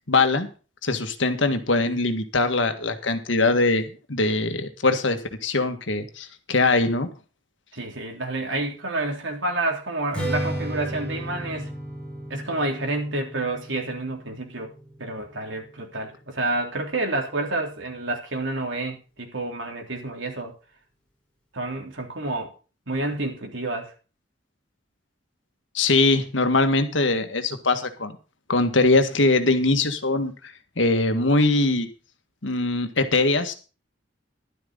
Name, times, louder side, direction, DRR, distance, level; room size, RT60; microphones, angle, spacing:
voice 1, 0.1-0.5 0.8-7.1 25.7-28.2 28.5-30.3 30.8-31.9 32.4-33.5, left 3 dB, 80° left, 1.8 m, -22 dB
voice 2, 7.7-11.8 12.3-14.7 15.0-20.5 21.5-22.5 22.9-23.9, right 2 dB, 85° right, 3.5 m, -29 dB
Strum, 10.1-16.4, right 1 dB, 5° left, 5.2 m, -34 dB
12.5 x 12.0 x 4.0 m
head